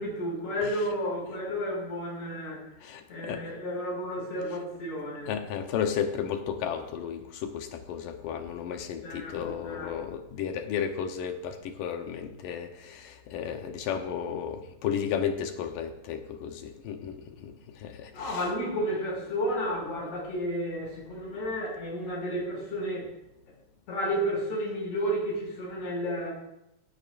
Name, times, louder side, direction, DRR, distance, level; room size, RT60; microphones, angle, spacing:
voice 1, 0.0-2.6 3.1-5.3 9.0-9.9 18.1-23.1 23.9-26.3, equal, 60° left, -3 dB, 6.6 m, -32 dB
voice 2, 2.8-3.5 5.3-18.5, left 8 dB, 85° left, 5 dB, 2.6 m, -33 dB
17.0 x 16.0 x 2.6 m, 0.88 s
omnidirectional pair, 3.8 m